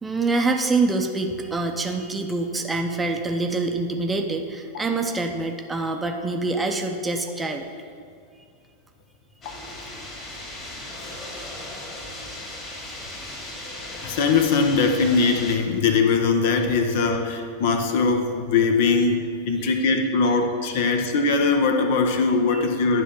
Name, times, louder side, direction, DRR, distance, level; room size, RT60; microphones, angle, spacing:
voice 1, 0.0-7.7 22.5-22.6, right 3 dB, 10° right, 4 dB, 0.7 m, -25 dB
sound 1, 9.4-15.5, left 1 dB, 25° left, 2.0 m, -37 dB
voice 2, 14.0-23.0, left 4 dB, 50° left, 5 dB, 0.8 m, -21 dB
10.0 x 3.7 x 7.1 m, 2.3 s
figure-of-eight pair, 90°, 0 cm